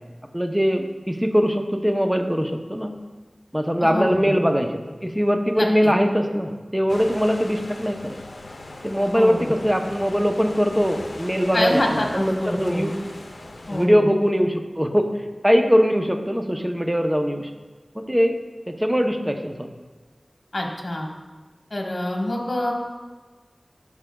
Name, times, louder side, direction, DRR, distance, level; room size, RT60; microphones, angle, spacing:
voice 1, 0.3-2.9 3.5-8.2 8.8-12.9 13.7-15.1 15.4-17.5 17.9-18.4 18.7-19.7, equal, 10° right, 5 dB, 0.7 m, -21 dB
voice 2, 3.8-4.3 5.6-5.7 9.1-9.5 11.5-12.9 13.7-14.1 20.5-21.1 21.7-22.7, left 1 dB, 55° left, 0 dB, 1.3 m, -25 dB
sound 1, 6.9-13.9, left 2 dB, 75° left, 0.6 m, -39 dB
11.5 x 4.9 x 2.3 m, 1.3 s
wide cardioid pair, 55°, 0 cm